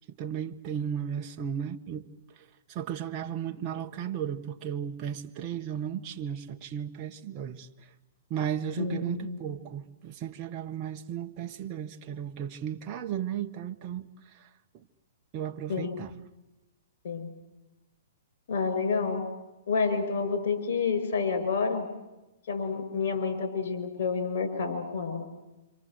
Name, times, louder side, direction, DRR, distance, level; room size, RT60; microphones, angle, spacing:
voice 1, 0.2-2.0 2.7-7.7 8.3-14.0 14.4-14.5 15.3-16.1, right 9 dB, 30° right, 1.2 m, -35 dB
voice 2, 8.8-9.4 15.7-16.0 17.0-17.3 18.5-19.2 19.7-21.9 22.5-25.3, left 5 dB, 60° left, 6.1 m, -29 dB
27.5 x 27.0 x 7.8 m
hypercardioid pair, 145°, 0 cm